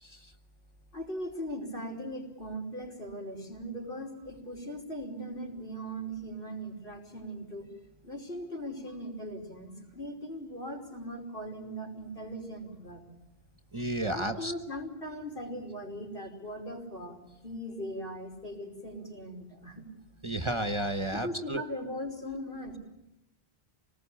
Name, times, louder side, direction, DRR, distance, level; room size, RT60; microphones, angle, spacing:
voice 1, 0.0-0.3 13.7-14.5 20.2-21.6, right 1 dB, 30° right, 8 dB, 1.1 m, -32 dB
voice 2, 0.9-7.7 8.0-13.0 14.1-19.9 21.1-22.8, equal, 60° left, 1 dB, 5.5 m, -39 dB
26.0 x 19.5 x 8.6 m, 0.94 s
omnidirectional pair, 1.0 m